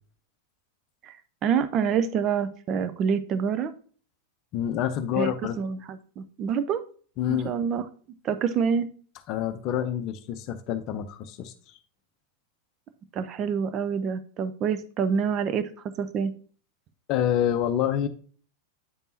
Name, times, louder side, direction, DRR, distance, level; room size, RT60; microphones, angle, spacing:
voice 1, 1.4-3.7 5.1-5.3 5.6-6.8 7.3-7.8 8.2-8.9 13.1-16.3, right 7 dB, 35° right, 11 dB, 0.5 m, -27 dB
voice 2, 4.5-5.6 7.2-7.5 9.3-11.8 17.1-18.1, left 10 dB, 40° left, 11 dB, 0.6 m, -27 dB
8.4 x 5.3 x 2.7 m, 0.43 s
figure-of-eight pair, 90°, 0 cm